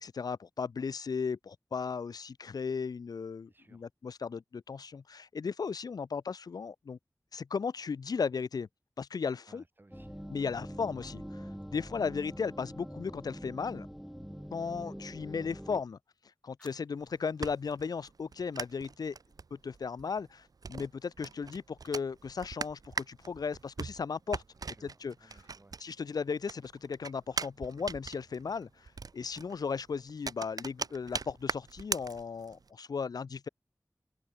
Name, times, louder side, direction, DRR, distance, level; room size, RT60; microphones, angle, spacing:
voice 1, 0.0-7.0 7.3-8.7 9.0-9.6 10.3-11.4 11.7-13.9 14.5-16.0 16.4-19.2 19.5-24.4 24.8-25.1 25.8-33.5, left 5 dB, 80° left, 0.4 m, -36 dB
voice 2, 3.5-3.9 9.5-10.3 24.6-25.8, right 2 dB, 30° right, 2.1 m, -61 dB
sound 1, 9.9-15.8, equal, ahead, 1.7 m, -44 dB
sound 2, 15.4-17.4, left 1 dB, 15° left, 2.7 m, -65 dB
sound 3, 17.0-26.1 26.4-32.7, right 4 dB, 75° right, 0.6 m, -41 dB
wide cardioid pair, 75°, 7 cm